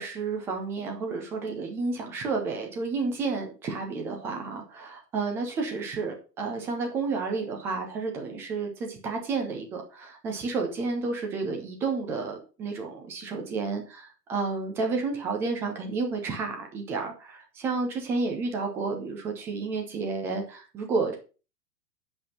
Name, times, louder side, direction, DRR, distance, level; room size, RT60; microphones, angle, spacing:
voice 1, 0.0-21.2, right 4 dB, 5° right, 3 dB, 0.3 m, -31 dB
8.4 x 5.4 x 5.3 m, 0.35 s
figure-of-eight pair, 105°, 49 cm